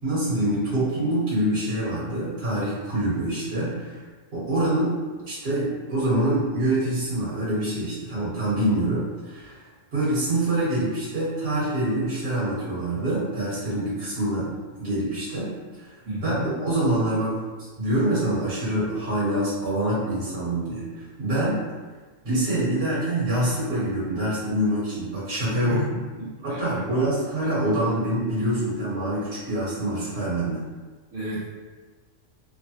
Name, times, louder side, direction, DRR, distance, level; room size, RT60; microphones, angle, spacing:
voice 1, 0.0-4.0 4.3-5.0 5.3-9.6 9.9-14.5 14.8-15.5 15.8-21.6 22.2-25.8 26.4-30.6, right 1 dB, 50° right, -9 dB, 1.5 m, -25 dB
voice 2, 16.0-16.5 25.7-26.8 31.1-31.5, equal, 75° right, -11 dB, 1.3 m, -32 dB
3.1 x 2.2 x 2.8 m, 1.4 s
omnidirectional pair, 1.3 m